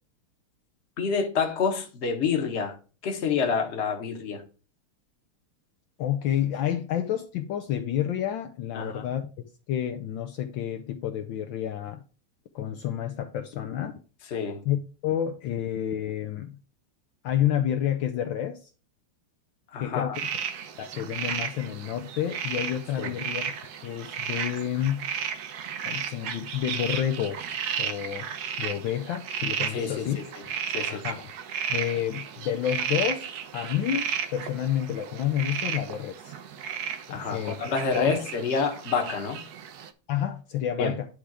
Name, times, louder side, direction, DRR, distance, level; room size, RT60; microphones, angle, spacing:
voice 1, 1.0-2.8 3.0-4.4 8.7-9.1 14.3-14.6 19.7-20.2 23.0-23.1 29.7-30.3 30.7-31.1 37.1-39.4 40.8-40.9, left 5 dB, 40° left, 1.2 m, -28 dB
voice 2, 6.0-12.0 12.5-13.9 14.6-16.6 17.2-18.7 19.8-20.1 20.8-23.4 23.8-25.1 25.8-27.4 27.8-28.3 28.6-30.2 30.9-31.3 31.7-36.3 37.1-37.7 38.0-38.1 40.1-41.1, left 10 dB, 75° left, 1.3 m, -29 dB
sound 1, 20.1-39.9, right 7 dB, 70° right, 0.9 m, -34 dB
10.0 x 3.4 x 4.8 m
omnidirectional pair, 2.4 m